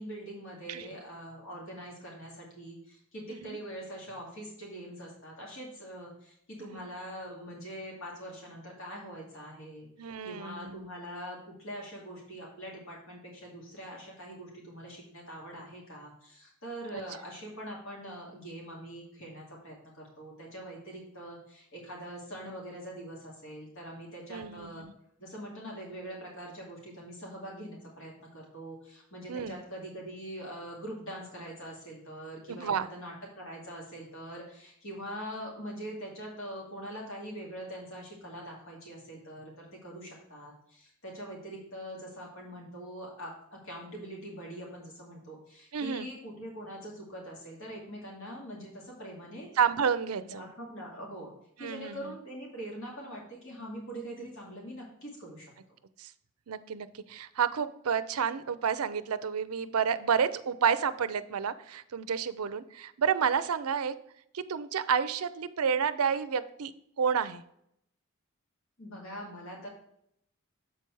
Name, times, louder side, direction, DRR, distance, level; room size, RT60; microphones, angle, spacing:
voice 1, 0.0-9.9 10.2-24.9 25.2-49.5 50.2-51.3 51.6-55.5 68.8-69.7, equal, 65° left, -2 dB, 2.4 m, -43 dB
voice 2, 10.0-10.8 16.9-17.0 24.3-24.9 29.3-29.6 32.5-32.9 45.7-46.1 49.6-50.4 51.6-52.1 56.0-56.1 56.5-63.9 64.3-66.7 67.0-67.4, right 7 dB, 85° right, 13 dB, 0.5 m, -30 dB
7.5 x 4.6 x 4.6 m, 0.73 s
head